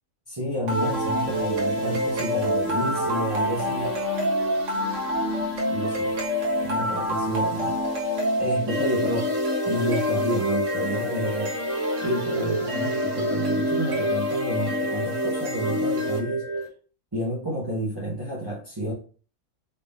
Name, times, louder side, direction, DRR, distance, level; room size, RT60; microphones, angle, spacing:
voice 1, 0.3-3.9 5.7-6.1 6.6-7.8 8.4-9.3 9.6-11.5 12.0-16.5 17.1-18.9, equal, 20° right, -5 dB, 1.0 m, -30 dB
sound 1, 0.7-16.7, equal, 60° right, 1.5 m, -26 dB
4.2 x 2.8 x 3.5 m, 0.39 s
omnidirectional pair, 1.5 m